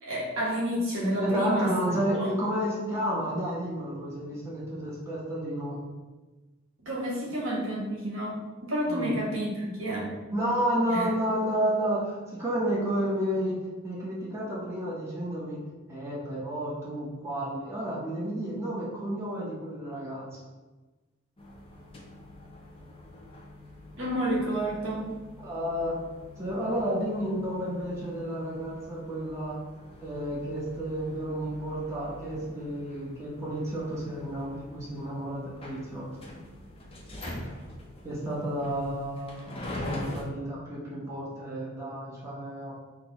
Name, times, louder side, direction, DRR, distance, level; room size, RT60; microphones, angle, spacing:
voice 1, 0.0-1.7 2.2-2.3 6.8-10.1 10.9-11.1 24.0-25.1, right 1 dB, 75° right, -5 dB, 1.3 m, -30 dB
voice 2, 1.2-5.8 8.9-9.1 10.3-15.6 15.9-20.4 25.4-26.0 26.4-29.6 30.0-36.1 38.0-42.7, equal, 15° right, -7 dB, 0.9 m, -31 dB
sound 1, 21.4-40.2, left 1 dB, 30° left, 0.6 m, -44 dB
5.8 x 2.2 x 2.9 m, 1.2 s
head